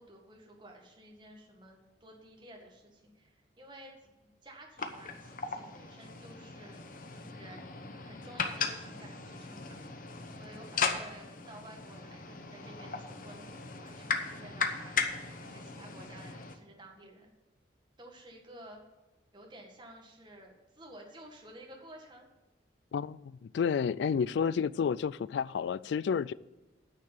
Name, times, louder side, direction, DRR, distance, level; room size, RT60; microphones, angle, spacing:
voice 1, 0.0-4.1 4.4-6.8 7.3-9.8 10.3-15.1 15.5-17.3 18.0-18.8 19.3-22.3, right 1 dB, 25° right, 0 dB, 1.8 m, -52 dB
sound 1, 4.8-16.6, left 5 dB, 45° left, 1.0 m, -37 dB
voice 2, 22.9-26.3, left 6 dB, 70° left, 20 dB, 0.3 m, -30 dB
9.8 x 6.6 x 7.2 m, 1.1 s
head